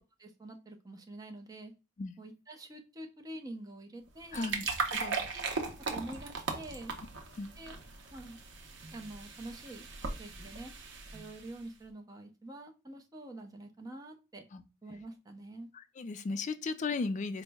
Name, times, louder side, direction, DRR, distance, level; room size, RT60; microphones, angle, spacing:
voice 1, 0.2-1.7 2.2-4.5 5.3-5.5 5.9-6.9 7.6-7.8 8.1-8.4 8.9-9.9 10.2-10.7 11.1-14.4 14.8-15.7, right 1 dB, 20° right, 0.5 m, -46 dB
sound 1, 4.1-11.6, right 4 dB, 65° right, 0.7 m, -38 dB
voice 2, 4.3-5.2 7.4-7.5 14.5-14.6 15.7-17.4, left 4 dB, 40° left, 0.3 m, -36 dB
4.3 x 2.0 x 3.4 m
head